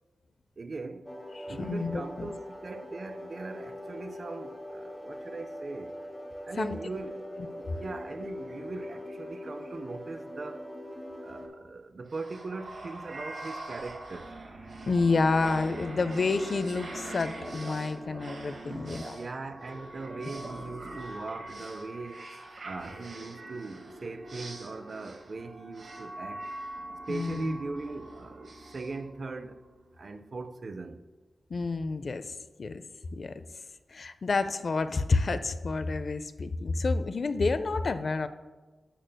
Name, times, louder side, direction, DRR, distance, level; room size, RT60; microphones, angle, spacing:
voice 1, 0.6-1.1 1.5-6.0 6.4-7.3 7.6-10.7 11.2-14.3 18.6-22.3 22.6-26.5 27.1-29.6 30.0-31.0, right 3 dB, 50° right, 0.4 m, -40 dB
sound 1, 1.1-11.5, left 1 dB, 10° left, 1.0 m, -42 dB
voice 2, 1.4-2.3 6.6-6.8 14.9-19.2 27.1-27.6 31.5-32.3 32.6-32.8 33.1-33.4 33.9-38.3, left 3 dB, 55° left, 0.3 m, -29 dB
sound 2, 12.1-29.7, right 2 dB, 75° right, 1.2 m, -43 dB
11.0 x 6.4 x 2.2 m
wide cardioid pair, 105°, 0 cm